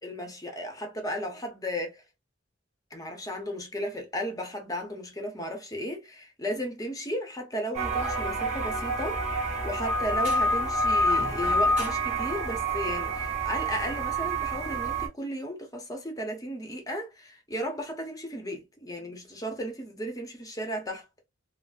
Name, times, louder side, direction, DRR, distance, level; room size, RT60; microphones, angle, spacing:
voice 1, 0.0-2.0 2.9-9.2 9.6-21.1, equal, 20° left, 0.8 m, -35 dB
sound 1, 7.7-15.1, right 1 dB, 35° right, 1.3 m, -27 dB
4.0 x 2.0 x 2.5 m
head